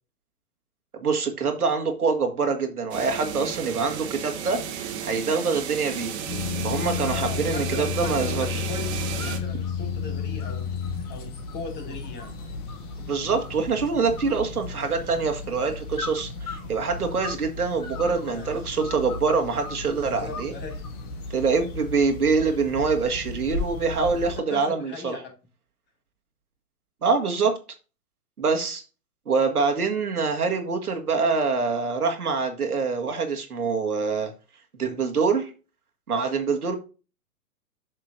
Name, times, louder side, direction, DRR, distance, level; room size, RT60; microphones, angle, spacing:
voice 1, 0.9-6.1 6.6-8.7 13.1-20.5 21.3-25.2 27.0-27.6 28.4-28.8 29.3-34.3 34.8-35.5 36.1-36.8, right 4 dB, 85° right, 1.9 m, -25 dB
sound 1, 2.9-9.4, right 8 dB, 50° right, 1.7 m, -33 dB
Drone Atmosphere, 6.3-24.4, left 5 dB, 45° left, 2.6 m, -34 dB
sound 2, 6.8-7.3 7.6-8.5 8.8-9.7 10.2-12.9 13.4-13.8 14.1-15.1 15.9-17.5 17.8-19.8 20.3-21.0, left 5 dB, 75° left, 1.9 m, -40 dB
voice 2, 7.0-10.7 11.1-12.4 18.0-18.6 20.0-20.8 21.1-21.2 24.2-25.3, left 4 dB, 25° left, 2.3 m, -39 dB
7.7 x 6.5 x 2.6 m
hypercardioid pair, 120°, 44 cm